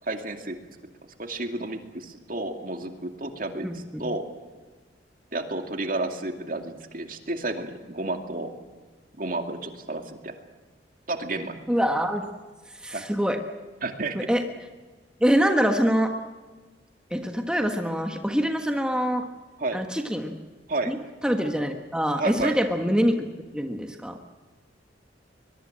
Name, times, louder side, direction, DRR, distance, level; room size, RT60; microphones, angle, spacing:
voice 1, 0.0-0.6 1.2-4.3 5.3-8.5 9.2-10.4 11.1-11.6 12.9-13.0 13.8-14.2 19.6-19.8 20.7-20.9 22.2-22.5, right 2 dB, 50° right, 5 dB, 2.4 m, -31 dB
voice 2, 3.6-4.0 11.7-12.3 12.8-13.4 14.1-14.4 15.2-16.1 17.1-19.3 19.7-20.4 20.9-21.0 21.2-23.3 23.5-24.2, equal, 5° right, 4 dB, 1.3 m, -24 dB
23.0 x 22.0 x 7.6 m, 1.4 s
head